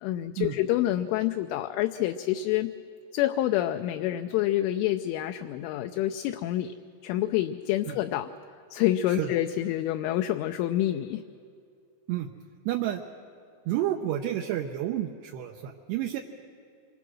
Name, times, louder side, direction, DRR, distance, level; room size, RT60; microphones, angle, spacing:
voice 1, 0.0-2.7 3.1-6.7 7.0-8.3 8.7-11.2, left 13 dB, 80° left, 6 dB, 3.0 m, -27 dB
voice 2, 12.7-13.0 13.7-16.2, right 12 dB, 80° right, 2 dB, 2.5 m, -30 dB
26.5 x 23.5 x 6.2 m, 2.4 s
omnidirectional pair, 6.0 m